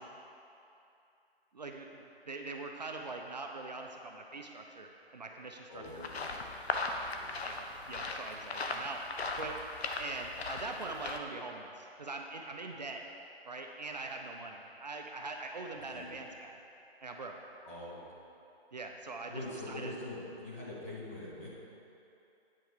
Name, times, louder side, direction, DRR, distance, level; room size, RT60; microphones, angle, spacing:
voice 1, 1.5-6.0 7.4-9.0 9.3-9.6 10.0-13.0 13.4-16.6 17.0-17.4 18.7-19.4 19.7-19.9, right 3 dB, 45° right, 2 dB, 0.6 m, -42 dB
voice 2, 5.7-6.4 7.1-7.4 15.9-16.2 17.6-18.1 19.3-21.5, left 1 dB, 15° left, -7 dB, 0.7 m, -44 dB
sound 1, 5.8-11.2, left 3 dB, 80° left, 0.9 m, -38 dB
9.4 x 4.6 x 6.2 m, 2.8 s
hypercardioid pair, 165°, 31 cm